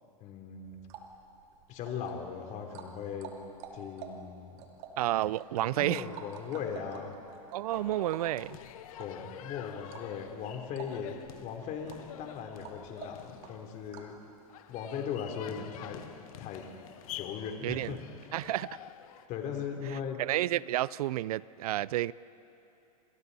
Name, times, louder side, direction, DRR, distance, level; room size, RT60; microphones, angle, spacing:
voice 1, 0.2-0.8 1.7-3.3 3.7-4.6 5.7-7.2 9.0-14.2 14.7-16.0 16.4-16.7 17.1-18.0 19.3-20.2, left 7 dB, 40° left, 3 dB, 3.3 m, -38 dB
sound 1, 0.7-14.2, right 5 dB, 50° right, 2.7 m, -49 dB
voice 2, 5.0-6.0 7.5-8.6 17.6-18.0 18.3-18.7 19.9-22.1, right 14 dB, 75° right, 22 dB, 0.5 m, -31 dB
sound 2, 7.7-19.3, left 11 dB, 65° left, 1.2 m, -48 dB
29.0 x 27.0 x 4.1 m, 3.0 s
hypercardioid pair, 125°, 19 cm